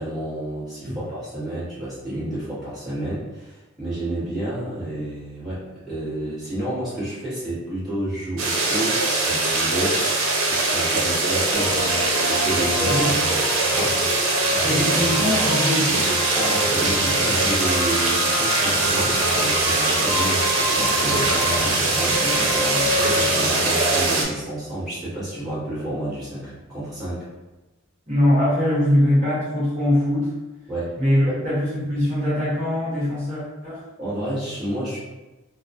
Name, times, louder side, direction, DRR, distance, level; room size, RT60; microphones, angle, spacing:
voice 1, 0.0-11.7 12.3-13.0 13.3-13.4 13.7-14.0 14.5-14.6 16.3-27.3 30.7-30.9 31.2-31.3 34.0-35.0, right 1 dB, ahead, -14 dB, 1.3 m, -30 dB
sound 1, 8.4-24.2, right 2 dB, 85° right, 0.6 m, -22 dB
sound 2, 11.5-24.0, left 1 dB, 60° left, 1.2 m, -28 dB
voice 2, 12.8-13.2 14.6-16.1 28.1-30.3 31.0-33.8, left 1 dB, 35° right, -10 dB, 1.0 m, -22 dB
2.9 x 2.2 x 2.6 m, 1.1 s
head